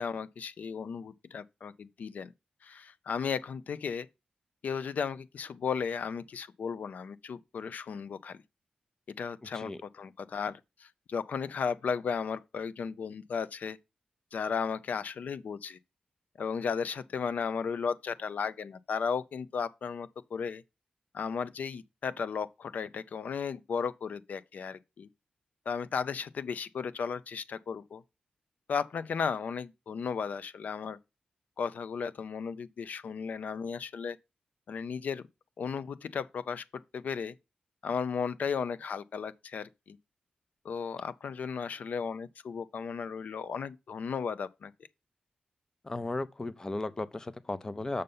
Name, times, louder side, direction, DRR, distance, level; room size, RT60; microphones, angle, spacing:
voice 1, 0.0-2.3 2.6-4.1 4.6-8.4 9.2-13.8 14.3-15.8 16.4-20.6 21.1-25.1 25.7-28.0 28.7-31.0 31.6-34.2 34.7-35.3 35.6-36.6 36.9-37.3 37.8-40.0 40.6-44.7, left 6 dB, 75° left, 0.5 m, -35 dB
voice 2, 45.8-48.0, left 2 dB, 25° left, 0.5 m, -35 dB
6.6 x 5.5 x 5.3 m
wide cardioid pair, 145°, 3 cm